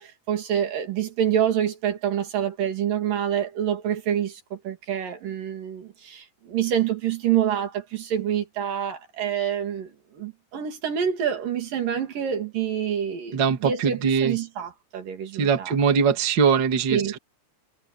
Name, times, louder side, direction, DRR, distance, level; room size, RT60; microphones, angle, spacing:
voice 1, 0.0-15.8 16.9-17.2, right 9 dB, 75° right, 4.3 m, -27 dB
voice 2, 13.3-14.3 15.4-17.2, right 6 dB, 40° right, 2.3 m, -21 dB
omnidirectional pair, 3.9 m